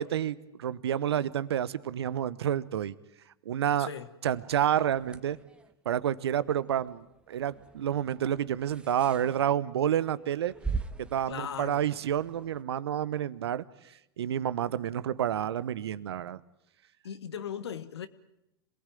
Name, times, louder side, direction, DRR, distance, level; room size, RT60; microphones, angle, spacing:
voice 1, 0.0-2.9 3.4-3.9 4.2-5.4 5.8-10.5 11.1-13.6 14.2-16.4, right 10 dB, 80° right, 1.0 m, -29 dB
voice 2, 3.8-4.1 11.3-11.9 17.0-18.1, left 8 dB, 80° left, 1.4 m, -38 dB
sound 1, 4.3-12.6, right 4 dB, 10° right, 1.4 m, -43 dB
26.5 x 19.0 x 9.2 m
hypercardioid pair, 100°, 13 cm